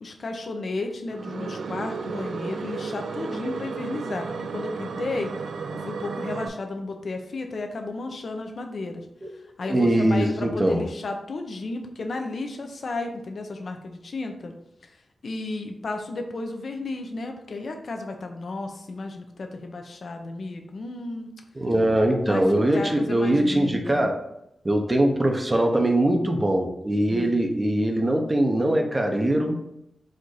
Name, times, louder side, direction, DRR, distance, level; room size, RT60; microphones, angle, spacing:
voice 1, 0.0-4.3 4.5-5.3 5.9-9.1 9.6-14.5 15.2-21.3 22.3-24.1 27.1-27.4, left 3 dB, 60° left, 4 dB, 0.6 m, -33 dB
sound 1, 1.1-6.5, right 4 dB, 80° right, 0.3 m, -33 dB
voice 2, 9.7-10.8 21.5-24.1 24.6-29.6, right 1 dB, 25° right, 3 dB, 0.7 m, -22 dB
4.2 x 2.6 x 4.7 m, 0.82 s
wide cardioid pair, 105°, 0 cm